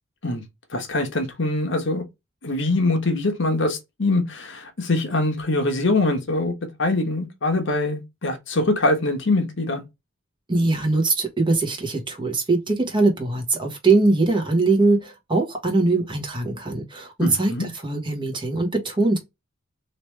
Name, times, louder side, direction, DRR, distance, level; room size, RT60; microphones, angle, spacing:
voice 1, 0.7-2.0 2.4-6.5 6.8-9.8 17.2-17.7, left 2 dB, 60° left, 1.1 m, -23 dB
voice 2, 10.5-19.2, right 3 dB, 25° right, 1.3 m, -22 dB
3.2 x 3.0 x 3.2 m
head